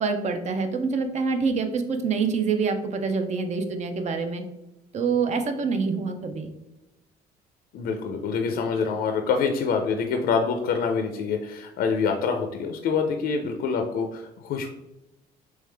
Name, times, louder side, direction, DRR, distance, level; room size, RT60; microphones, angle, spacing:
voice 1, 0.0-4.4 4.9-6.5, right 5 dB, 45° right, 7 dB, 0.6 m, -26 dB
voice 2, 7.7-14.7, left 5 dB, 65° left, 4 dB, 0.5 m, -26 dB
3.5 x 3.2 x 3.3 m, 0.95 s
cardioid pair, 110°, 17 cm